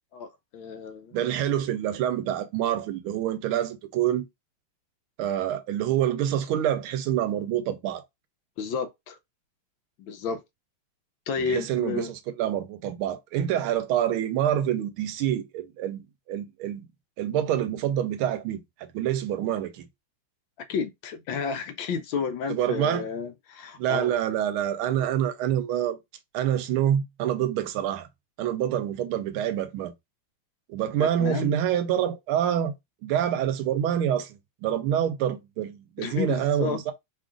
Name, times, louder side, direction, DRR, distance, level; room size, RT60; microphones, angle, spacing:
voice 1, 0.1-1.2 8.6-9.2 10.0-10.4 11.3-12.1 20.7-24.1 25.0-25.1 31.0-31.6 36.0-36.8, left 5 dB, 75° left, 1.3 m, -31 dB
voice 2, 1.1-4.3 5.2-8.0 11.5-16.8 17.2-19.9 22.5-23.0 23.8-26.0 26.3-28.1 28.4-29.9 30.7-32.7 33.0-36.9, right 10 dB, 85° right, 1.4 m, -27 dB
3.6 x 2.4 x 3.6 m
omnidirectional pair, 2.3 m